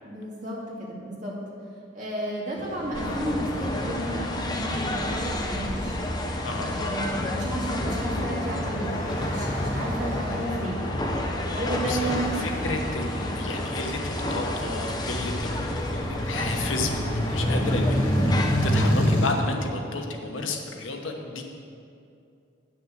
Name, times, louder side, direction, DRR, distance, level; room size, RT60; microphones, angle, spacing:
voice 1, 0.0-1.4 1.9-6.0 6.7-10.9 11.5-13.3 17.6-18.0, right 1 dB, 40° right, -5 dB, 2.3 m, -33 dB
sound 1, 2.6-19.3, equal, 40° left, 1.8 m, -30 dB
sound 2, 2.9-18.9, left 1 dB, 20° left, 0.8 m, -30 dB
voice 2, 6.4-6.7 11.8-17.9 18.2-21.4, left 3 dB, 85° left, 3 dB, 1.1 m, -32 dB
9.2 x 6.4 x 6.4 m, 2.5 s
head